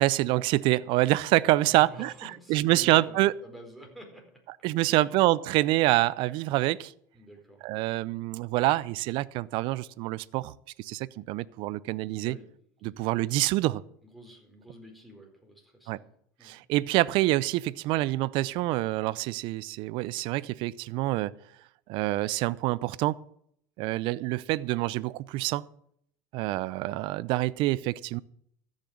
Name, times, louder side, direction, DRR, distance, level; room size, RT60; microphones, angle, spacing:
voice 1, 0.0-3.3 4.6-6.9 7.6-12.4 12.8-13.8 15.9-16.0 16.4-21.3 21.9-23.2 23.8-25.6 26.3-28.2, right 18 dB, 60° right, 0.6 m, -26 dB
voice 2, 1.6-4.4 4.8-5.1 7.1-7.7 12.1-12.5 12.9-13.1 14.1-16.1 16.4-16.6, equal, ahead, 4.3 m, -49 dB
14.0 x 6.5 x 8.6 m
hypercardioid pair, 95°, 10 cm